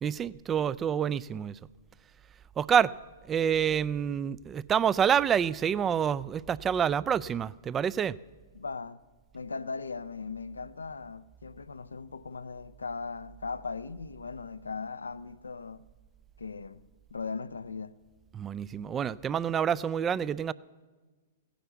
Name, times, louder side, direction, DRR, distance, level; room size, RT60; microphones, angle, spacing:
voice 1, 0.0-1.6 2.6-2.9 3.3-8.2 18.3-20.5, right 8 dB, 20° right, 0.4 m, -27 dB
voice 2, 8.5-9.0 9.3-15.9 16.4-16.8 17.1-17.9, left 4 dB, 90° left, 0.5 m, -38 dB
16.0 x 10.0 x 8.0 m
hypercardioid pair, 115°, 0 cm